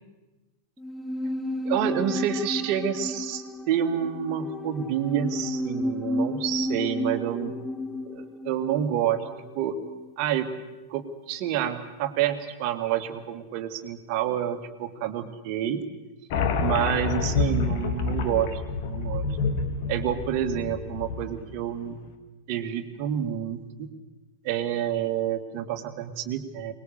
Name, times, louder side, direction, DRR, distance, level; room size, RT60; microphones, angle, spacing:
sound 1, 0.8-10.1 10.4-10.5, left 1 dB, ahead, 1.3 m, -32 dB
voice 1, 1.6-7.5 8.0-9.3 9.6-9.8 10.2-10.5 10.9-15.8 16.6-19.2 19.9-22.0 22.5-23.9 24.4-26.7, right 10 dB, 45° right, 8 dB, 2.0 m, -28 dB
sound 2, 16.3-21.5, left 4 dB, 50° left, 2.0 m, -28 dB
24.0 x 20.5 x 6.8 m, 1.1 s
figure-of-eight pair, 90°, 0 cm